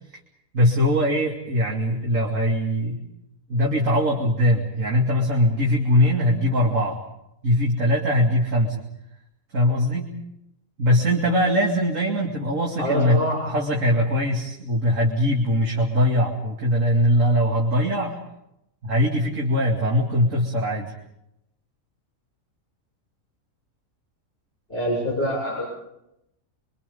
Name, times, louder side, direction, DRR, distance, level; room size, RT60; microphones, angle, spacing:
voice 1, 0.5-3.0 3.5-7.0 7.4-8.8 9.5-10.1 10.8-18.1 18.8-20.9, equal, 70° right, -1 dB, 2.9 m, -21 dB
voice 2, 12.8-13.4 24.7-25.6, equal, 45° left, -4 dB, 7.4 m, -25 dB
29.0 x 24.5 x 5.4 m, 0.85 s
omnidirectional pair, 1.4 m